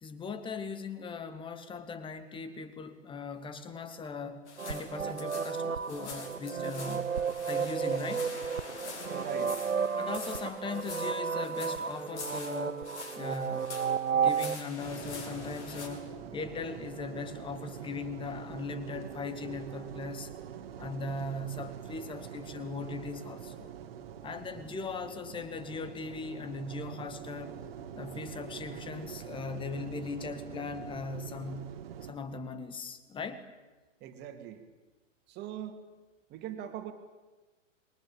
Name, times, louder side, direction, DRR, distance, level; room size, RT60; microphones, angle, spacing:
voice 1, 0.0-4.4 4.7-7.2 7.5-8.3 10.0-12.9 13.2-13.7 14.1-20.3 20.8-23.7 24.2-27.6 28.0-33.5, left 4 dB, 15° left, 11 dB, 2.1 m, -39 dB
sound 1, 4.5-15.9, left 4 dB, 60° left, 7.0 m, -45 dB
sound 2, 4.6-14.6, right 6 dB, 85° right, 1.0 m, -33 dB
voice 2, 9.0-9.6 34.0-34.6 35.3-35.8 36.3-36.9, right 10 dB, 25° right, 6 dB, 3.0 m, -41 dB
sound 3, 14.8-32.1, right 9 dB, 50° right, 2.4 m, -45 dB
27.0 x 23.5 x 9.0 m, 1.2 s
figure-of-eight pair, 115°, 38 cm